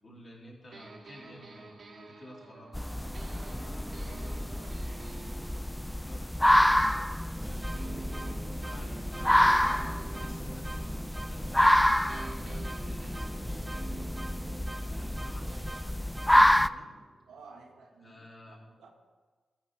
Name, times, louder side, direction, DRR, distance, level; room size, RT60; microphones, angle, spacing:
voice 1, 0.0-2.8 6.0-6.9 7.4-8.1 8.6-11.0 11.3-11.7 12.4-14.4 14.8-16.9 18.0-18.6, left 1 dB, 55° left, -3 dB, 3.4 m, -52 dB
sound 1, 0.7-7.3 7.7-11.8 12.1-17.8, right 3 dB, 60° right, 1.5 m, -50 dB
sound 2, 2.7-16.7, left 1 dB, 5° left, 0.3 m, -28 dB
voice 2, 3.0-4.8 17.3-18.9, right 3 dB, 85° right, 2 dB, 1.4 m, -52 dB
sound 3, 7.2-16.3, right 1 dB, 20° right, 1.0 m, -45 dB
13.0 x 5.3 x 6.5 m, 1.4 s
supercardioid pair, 45°, 0 cm